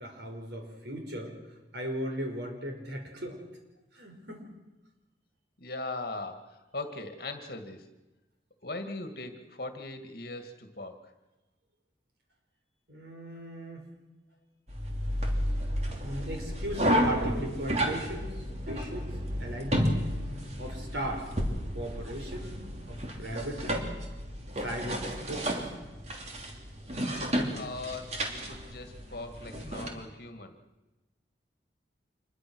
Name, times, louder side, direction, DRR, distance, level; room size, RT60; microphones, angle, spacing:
voice 1, 0.0-1.3 1.7-3.4 3.9-4.5 12.9-13.8 16.0-19.1 19.4-20.0 20.6-21.3 21.7-23.9 24.6-25.6, equal, 75° right, 3 dB, 5.1 m, -37 dB
voice 2, 5.6-7.9 8.6-11.1 15.9-16.0 27.5-30.5, left 2 dB, 55° left, 7 dB, 2.1 m, -40 dB
sound 1, 14.7-29.9, equal, 35° right, 3.0 m, -32 dB
26.5 x 22.0 x 6.3 m, 1.1 s
head